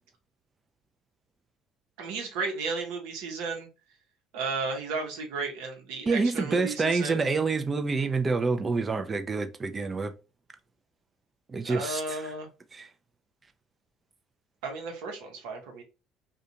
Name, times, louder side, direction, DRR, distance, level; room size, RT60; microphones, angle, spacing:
voice 1, 2.0-3.7 4.3-7.2 11.6-12.5 14.6-15.8, right 4 dB, 75° right, 0.9 m, -34 dB
voice 2, 6.1-10.1 11.5-12.2 12.7-12.9, right 4 dB, 30° right, 0.5 m, -27 dB
2.5 x 2.3 x 2.7 m
hypercardioid pair, 70°, 0 cm